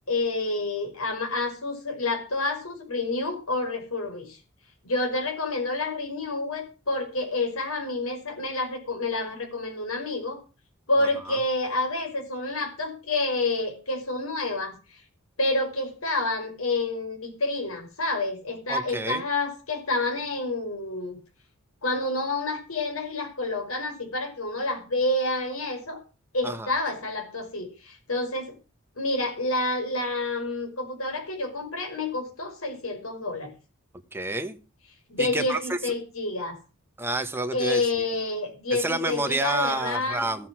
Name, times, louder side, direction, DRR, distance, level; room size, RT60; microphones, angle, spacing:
voice 1, 0.1-4.4 4.8-10.4 10.9-15.0 15.4-21.2 21.8-26.0 26.3-28.5 29.0-33.5 35.1-36.6 37.5-40.3, left 2 dB, 75° left, 5.5 m, -28 dB
voice 2, 18.7-19.2 26.4-26.7 34.1-34.6 35.2-35.9 37.0-37.8 38.8-40.5, right 2 dB, 10° right, 1.3 m, -29 dB
14.0 x 10.5 x 6.2 m
head